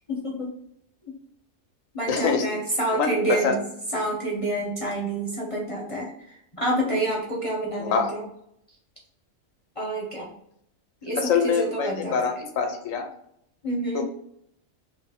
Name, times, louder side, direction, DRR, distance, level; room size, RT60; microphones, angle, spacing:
voice 1, 0.1-0.5 1.9-3.6 3.9-8.2 9.8-10.3 11.0-12.2 13.6-14.0, right 1 dB, 30° left, -3 dB, 0.7 m, -28 dB
voice 2, 2.1-2.4 2.9-3.6 7.8-8.1 11.2-13.1 13.9-14.0, left 6 dB, 75° left, 5 dB, 1.0 m, -25 dB
3.2 x 3.2 x 3.3 m, 0.72 s
omnidirectional pair, 1.4 m